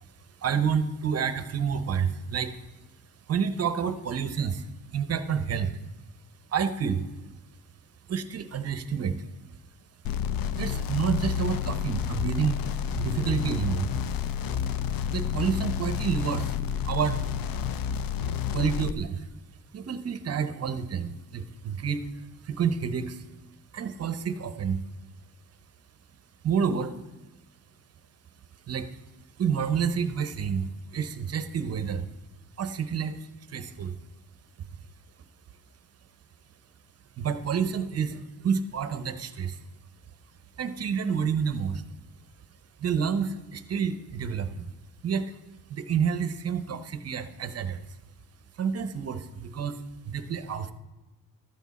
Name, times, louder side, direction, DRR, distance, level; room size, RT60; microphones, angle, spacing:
voice 1, 0.4-2.6 3.3-5.7 6.5-7.0 8.1-9.2 10.6-12.6 13.0-13.9 15.1-16.6 16.8-17.2 18.5-19.3 19.7-22.1 22.4-23.2 23.7-24.8 26.4-26.9 28.7-28.9 29.4-32.1 32.6-33.9 37.2-39.6 40.6-41.8 42.8-44.7 45.0-45.3 45.7-47.9 48.6-50.7, right 7 dB, 45° right, 11 dB, 0.7 m, -29 dB
sound 1, 10.0-18.9, left 8 dB, 90° left, 0.6 m, -30 dB
13.0 x 8.7 x 4.0 m, 1.1 s
wide cardioid pair, 160°, 34 cm